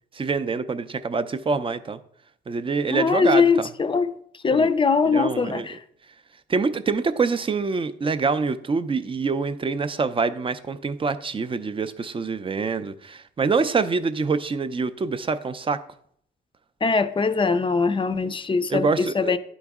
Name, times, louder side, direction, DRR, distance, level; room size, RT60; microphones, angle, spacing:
voice 1, 0.1-2.0 2.5-3.7 4.5-4.7 5.0-5.7 6.5-15.8 18.7-19.3, right 4 dB, 25° right, 0.5 m, -25 dB
voice 2, 2.9-4.1 4.4-5.8 16.8-19.4, left 5 dB, 25° left, 0.5 m, -21 dB
11.0 x 3.9 x 3.6 m
cardioid pair, 90°, 20 cm